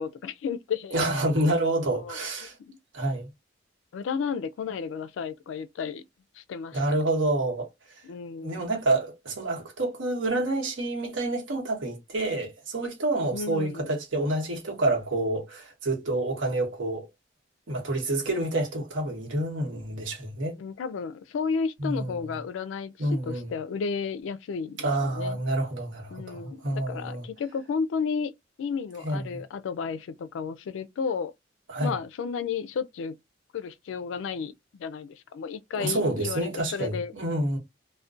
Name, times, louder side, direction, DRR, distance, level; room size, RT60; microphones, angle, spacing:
voice 1, 0.0-0.9 1.9-2.8 3.9-6.0 6.3-7.0 8.0-8.6 13.3-13.9 20.6-25.4 26.1-28.3 28.6-31.3 31.8-33.1 33.5-37.1, left 5 dB, 80° left, 0.3 m, -33 dB
voice 2, 0.9-2.6 2.9-3.3 6.7-7.7 8.4-17.1 17.7-20.6 21.8-22.2 23.0-23.5 24.8-27.2 29.0-29.4 31.7-32.0 35.8-37.6, right 2 dB, 85° right, 1.0 m, -28 dB
2.4 x 2.1 x 2.4 m
head